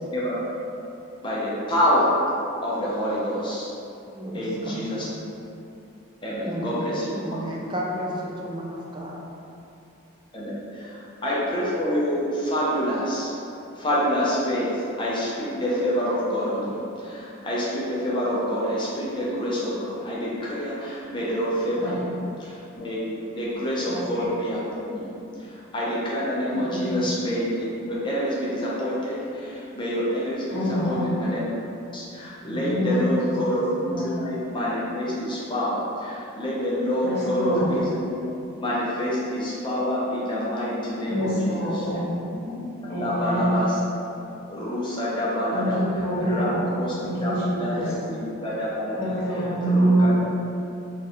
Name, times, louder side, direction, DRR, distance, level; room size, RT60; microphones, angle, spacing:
voice 1, 0.1-0.4 1.2-2.1 2.6-3.7 4.3-5.0 6.2-7.4 10.3-13.3 13.8-25.1 25.4-31.4 31.9-38.3 38.6-41.9 42.3-43.8 44.5-45.8 46.2-46.5 46.7-46.9 47.2-49.1 49.6-50.2, equal, 20° left, -7 dB, 0.7 m, -27 dB
voice 2, 4.1-5.0 6.4-6.8 7.1-9.2, equal, 20° right, -3 dB, 0.4 m, -33 dB
voice 3, 21.8-22.1 23.8-24.3 26.7-27.0 30.5-31.0 32.4-33.5 33.8-34.1 37.0-37.7 41.1-42.1 42.9-43.6 45.5-46.6 47.0-47.9 49.0-50.2, right 1 dB, 50° left, -8 dB, 1.2 m, -25 dB
3.7 x 2.4 x 4.3 m, 2.8 s
head